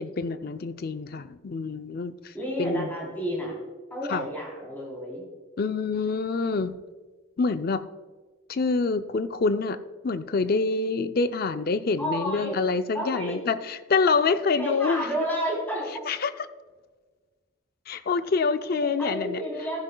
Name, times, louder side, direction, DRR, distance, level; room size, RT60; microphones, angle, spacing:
voice 1, 0.0-2.3 2.6-2.9 4.1-4.2 5.6-6.8 7.4-7.9 8.5-9.8 10.0-15.1 16.1-16.3 17.9-19.4, left 4 dB, 45° left, 11 dB, 0.4 m, -26 dB
voice 2, 2.3-3.6 3.9-5.2 12.0-12.6 12.9-13.4 14.6-15.9 18.8-19.8, equal, 10° left, -3 dB, 3.5 m, -31 dB
14.5 x 10.5 x 2.3 m, 1.4 s
head